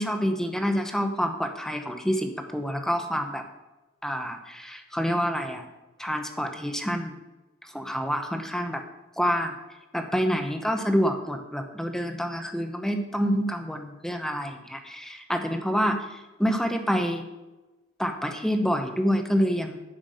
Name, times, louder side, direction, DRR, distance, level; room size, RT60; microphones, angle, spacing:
voice 1, 0.0-3.4 4.0-5.6 6.0-7.2 7.7-8.8 9.2-9.5 9.9-17.2 18.0-19.8, equal, ahead, 6 dB, 0.9 m, -27 dB
10.0 x 5.9 x 7.8 m, 1.1 s
head